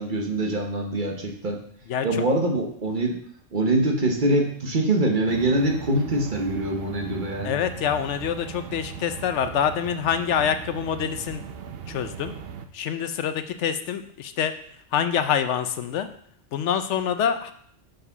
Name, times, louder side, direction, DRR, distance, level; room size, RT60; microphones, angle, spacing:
voice 1, 0.0-1.6 2.0-3.2 3.5-7.5, right 1 dB, 45° right, 1 dB, 1.1 m, -24 dB
sound 1, 5.3-12.7, right 7 dB, 60° right, 0.7 m, -39 dB
voice 2, 7.4-11.4 11.9-12.3 12.7-14.5 14.9-16.1 16.5-17.5, left 8 dB, 75° left, 9 dB, 0.9 m, -26 dB
6.4 x 4.8 x 5.5 m, 0.63 s
omnidirectional pair, 1.3 m